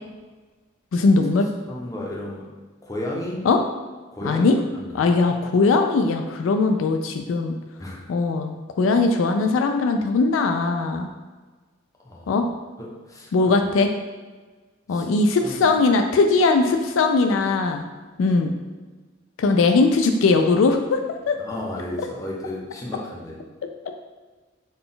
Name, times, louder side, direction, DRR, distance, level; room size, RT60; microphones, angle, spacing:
voice 1, 0.9-1.5 3.5-3.6 4.2-4.6 4.9-7.6 8.1-11.1 12.3-12.5 13.3-13.9 14.9-17.8 18.2-18.5 19.4-21.0 21.3-21.4, left 3 dB, 75° left, 5 dB, 0.3 m, -20 dB
voice 2, 1.7-2.5 2.8-3.4 4.1-5.1 7.8-8.1 12.0-12.4 12.8-13.5 14.9-15.8 21.4-23.4, left 1 dB, 15° left, -3 dB, 0.6 m, -34 dB
3.9 x 2.2 x 3.9 m, 1.3 s
head